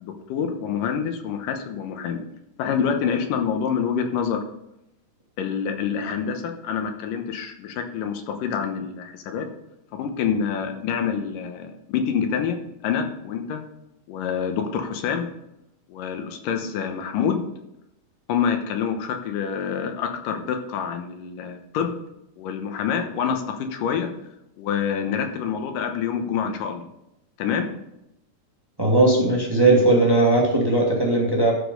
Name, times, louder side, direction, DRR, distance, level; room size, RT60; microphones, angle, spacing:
voice 1, 0.0-2.2 2.6-4.4 5.4-9.5 10.0-12.6 12.8-13.6 14.1-15.3 15.9-17.4 18.3-22.0 22.4-24.1 24.6-26.9 27.4-27.7, left 7 dB, 90° left, 5 dB, 2.7 m, -26 dB
voice 2, 28.8-31.5, right 2 dB, 20° right, -2 dB, 0.7 m, -18 dB
12.5 x 5.1 x 5.3 m, 0.84 s
omnidirectional pair, 3.7 m